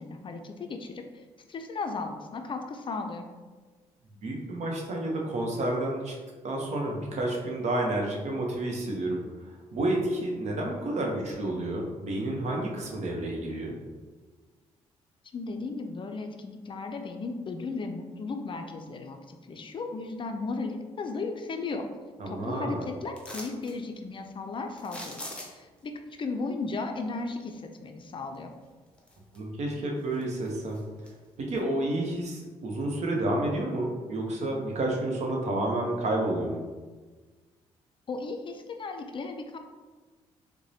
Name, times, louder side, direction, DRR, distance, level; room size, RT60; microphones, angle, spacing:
voice 1, 0.0-3.3 15.3-21.9 22.3-25.2 25.5-28.5 38.1-39.6, left 3 dB, 40° left, 5 dB, 0.4 m, -35 dB
voice 2, 4.2-6.2 6.4-13.8 22.2-22.9 29.3-30.8 31.4-36.6, right 1 dB, 60° right, 0 dB, 0.8 m, -30 dB
sound 1, 23.2-23.8 24.8-25.8 28.3-28.4 28.9-29.6 30.0-31.1 31.6-31.7, left 1 dB, 10° left, 0.7 m, -42 dB
4.7 x 2.2 x 2.7 m, 1.4 s
supercardioid pair, 55°, 13 cm